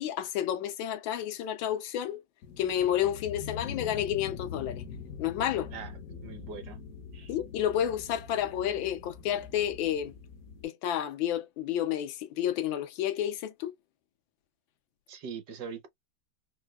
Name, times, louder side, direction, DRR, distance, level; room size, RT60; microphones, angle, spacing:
voice 1, 0.0-2.2 2.6-4.8 5.2-5.7 7.3-10.1 10.6-13.7, left 10 dB, 90° left, 1.4 m, -30 dB
sound 1, 2.4-10.6, left 6 dB, 65° left, 0.9 m, -43 dB
voice 2, 5.7-6.8 7.1-7.3 15.1-15.9, right 6 dB, 65° right, 1.3 m, -42 dB
4.7 x 2.1 x 2.2 m
omnidirectional pair, 2.1 m